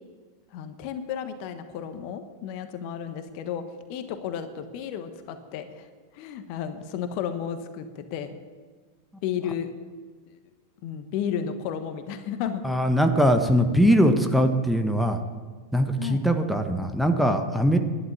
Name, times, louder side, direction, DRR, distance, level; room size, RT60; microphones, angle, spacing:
voice 1, 0.5-3.6 3.9-5.9 6.1-8.4 9.2-9.7 10.8-12.6 16.0-16.2, left 8 dB, 45° left, 9 dB, 1.3 m, -33 dB
voice 2, 12.6-15.2 15.7-17.8, equal, ahead, 5 dB, 1.3 m, -21 dB
12.0 x 11.5 x 8.6 m, 1.4 s
figure-of-eight pair, 90°, 0 cm